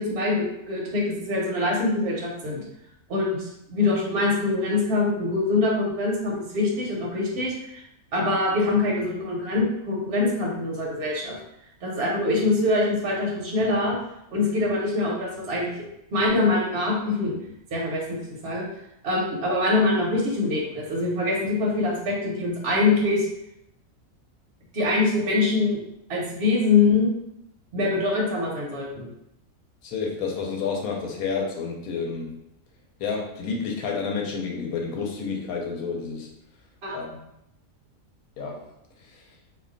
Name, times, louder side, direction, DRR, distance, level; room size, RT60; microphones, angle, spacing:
voice 1, 0.0-2.6 3.1-7.8 8.1-11.4 11.8-14.0 14.3-15.9 16.1-18.2 18.4-18.7 19.0-23.3 24.7-25.8 26.1-27.1 27.7-29.1 36.8-37.0, left 2 dB, 55° right, -3 dB, 0.8 m, -24 dB
voice 2, 29.8-32.4 33.0-36.3 36.9-37.2 38.4-38.6, left 5 dB, 80° left, -1 dB, 1.1 m, -30 dB
2.5 x 2.2 x 3.7 m, 0.81 s
omnidirectional pair, 1.5 m